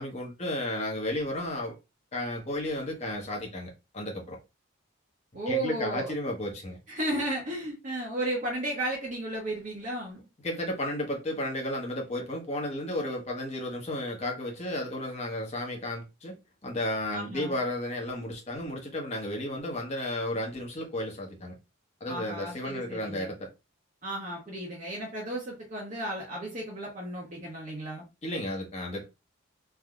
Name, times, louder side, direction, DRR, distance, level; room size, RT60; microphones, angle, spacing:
voice 1, 0.0-1.7 2.1-4.4 5.5-6.8 10.4-16.3 16.6-21.5 22.0-23.5 28.2-29.1, left 1 dB, 30° left, 0.9 m, -33 dB
voice 2, 5.3-6.1 6.9-10.2 17.1-17.6 22.1-23.3 24.0-28.0, right 1 dB, 35° right, 0.8 m, -34 dB
3.5 x 2.7 x 2.3 m
head